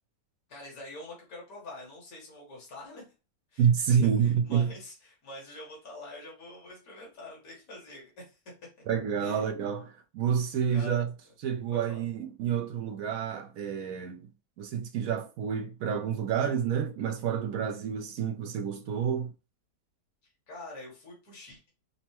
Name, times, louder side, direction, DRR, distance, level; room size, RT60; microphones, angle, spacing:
voice 1, 0.5-3.0 3.5-3.8 4.2-8.4 9.2-9.4 10.7-11.0 11.7-12.0 20.5-21.7, left 2 dB, 55° left, 2.1 m, -46 dB
voice 2, 3.6-4.7 8.9-11.1 11.4-14.3 14.6-19.3, right 8 dB, 70° right, 0.9 m, -28 dB
5.3 x 2.1 x 2.9 m
omnidirectional pair, 1.8 m